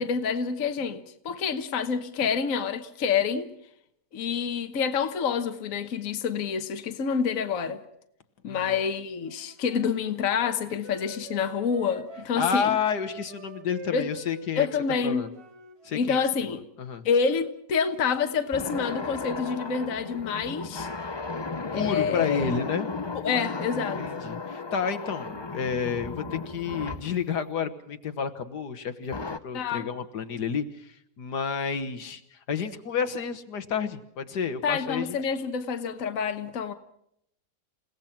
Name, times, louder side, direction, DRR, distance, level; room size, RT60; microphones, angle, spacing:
voice 1, 0.0-3.5 4.1-7.8 8.4-12.8 13.9-14.1 14.6-15.2 15.9-16.6 17.0-20.9 21.7-22.5 23.2-24.0 29.5-29.9 34.6-36.7, left 6 dB, 55° left, 1.5 m, -27 dB
voice 2, 8.4-8.8 12.4-14.7 15.0-15.3 15.8-16.2 16.5-17.0 21.7-22.9 24.0-29.1 29.4-35.2, left 6 dB, 70° left, 1.8 m, -30 dB
Wind instrument woodwind instrument, 9.2-12.3 12.8-16.1, right 2 dB, 60° right, 2.7 m, -45 dB
sound 1, 18.5-27.2 29.1-29.4, left 3 dB, 40° left, 0.3 m, -35 dB
29.0 x 17.0 x 5.9 m
omnidirectional pair, 1.8 m